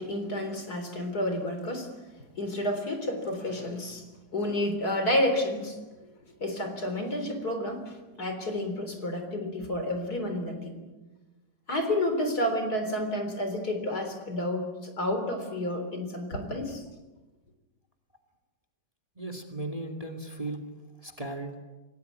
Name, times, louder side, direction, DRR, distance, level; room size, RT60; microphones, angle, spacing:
voice 1, 0.0-1.9 2.4-4.0 4.3-5.8 6.4-10.8 11.7-16.8, left 1 dB, 55° left, 6 dB, 4.3 m, -30 dB
voice 2, 19.2-20.6 21.0-21.5, right 2 dB, 20° right, 6 dB, 2.5 m, -36 dB
28.0 x 18.5 x 9.3 m, 1.2 s
omnidirectional pair, 2.0 m